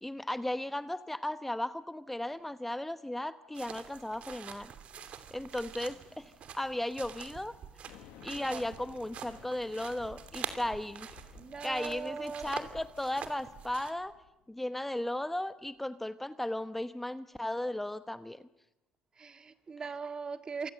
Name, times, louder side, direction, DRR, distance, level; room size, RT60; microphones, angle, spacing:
voice 1, 0.0-4.7 5.3-7.6 8.2-11.1 11.6-14.1 14.5-18.4, left 1 dB, 5° left, 1.0 m, -36 dB
sound 1, 3.5-13.9, right 8 dB, 55° right, 2.9 m, -46 dB
sound 2, 7.9-14.4, left 13 dB, 75° left, 1.3 m, -57 dB
voice 2, 8.3-8.6 10.5-10.6 11.4-12.5 19.2-20.7, right 5 dB, 35° right, 1.9 m, -40 dB
28.0 x 25.0 x 7.8 m
supercardioid pair, 80°, 3 cm